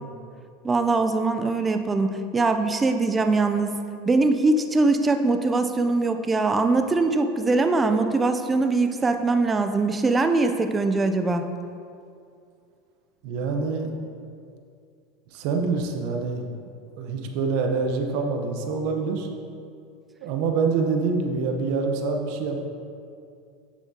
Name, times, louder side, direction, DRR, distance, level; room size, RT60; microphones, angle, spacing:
voice 1, 0.6-3.7 4.0-11.4, right 3 dB, 15° right, 7 dB, 0.5 m, -22 dB
voice 2, 13.2-13.9 15.3-16.5 17.0-19.3 20.2-22.6, right 4 dB, 60° right, 3 dB, 0.9 m, -26 dB
9.3 x 7.2 x 2.9 m, 2.4 s
supercardioid pair, 140°, 0 cm